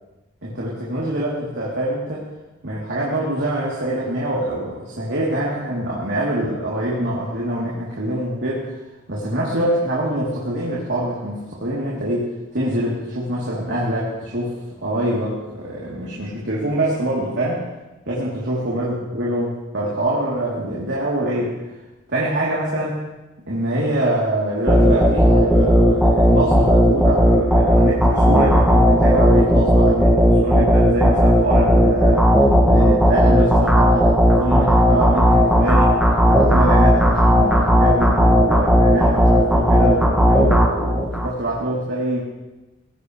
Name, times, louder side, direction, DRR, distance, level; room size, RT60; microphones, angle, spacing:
voice 1, 0.4-2.3 2.6-8.8 9.1-17.6 18.1-21.6 22.1-23.0 23.5-32.3 32.6-36.0 36.3-42.2, right 1 dB, 60° right, -6 dB, 3.4 m, -24 dB
sound 1, 24.7-41.3, equal, 5° right, 2.0 m, -15 dB
21.5 x 17.5 x 3.3 m, 1.1 s
head